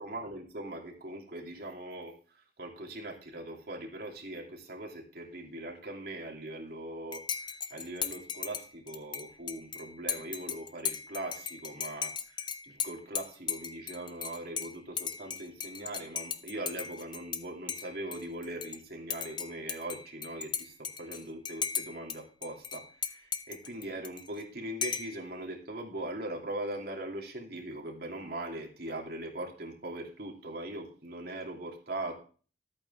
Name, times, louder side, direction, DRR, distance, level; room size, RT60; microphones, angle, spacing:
voice 1, 0.0-32.1, right 1 dB, 55° right, 0 dB, 2.8 m, -41 dB
Dishes pots and pans / Cutlery silverware / Chink clink, 7.1-17.4 17.7-18.8 19.1-22.2 22.4-24.4 24.8-25.2, left 7 dB, 25° left, 0.6 m, -37 dB
13.5 x 8.6 x 3.6 m, 0.39 s
head